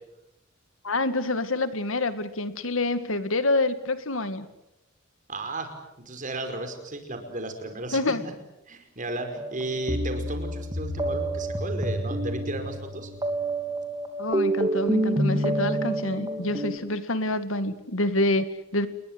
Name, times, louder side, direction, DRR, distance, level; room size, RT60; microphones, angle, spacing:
voice 1, 0.8-4.5 7.9-8.2 14.2-18.9, left 2 dB, 70° left, 11 dB, 2.1 m, -27 dB
voice 2, 5.3-8.3 8.7-13.1, right 2 dB, 40° right, 6 dB, 5.1 m, -34 dB
sound 1, 9.4-16.8, right 1 dB, 20° right, 3.4 m, -28 dB
29.5 x 21.5 x 8.0 m, 0.89 s
head